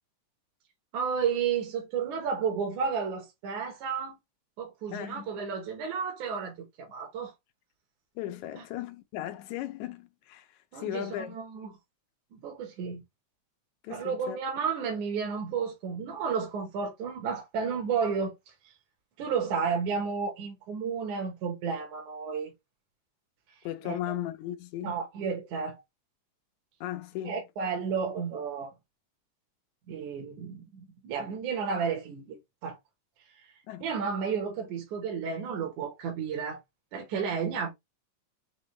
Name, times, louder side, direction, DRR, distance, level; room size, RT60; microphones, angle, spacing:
voice 1, 0.9-4.2 4.6-7.3 8.6-8.7 10.7-11.7 12.3-13.0 13.9-18.7 19.2-22.5 23.8-24.0 24.8-25.8 27.3-28.7 29.9-32.4 32.6-32.8 33.4-33.5 33.8-36.6 36.9-37.7, right 6 dB, 75° right, 2.5 m, -32 dB
voice 2, 4.9-5.3 8.2-11.4 11.6-11.7 13.8-14.4 23.6-25.0 26.8-27.4 33.7-33.8, left 12 dB, 80° left, 2.0 m, -37 dB
6.1 x 2.9 x 3.0 m
omnidirectional pair, 3.4 m